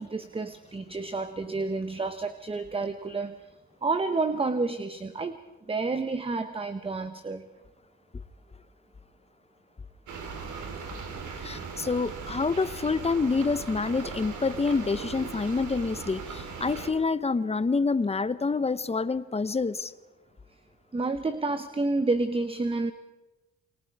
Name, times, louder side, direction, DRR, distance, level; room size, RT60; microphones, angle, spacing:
voice 1, 0.0-3.4 3.8-5.4 5.7-7.5 20.9-22.9, right 3 dB, 20° right, 1.0 m, -29 dB
sound 1, 10.1-16.9, right 5 dB, 75° right, 3.8 m, -39 dB
voice 2, 11.4-19.9, left 4 dB, 20° left, 0.9 m, -27 dB
29.0 x 23.5 x 4.7 m
cardioid pair, 90°, 30 cm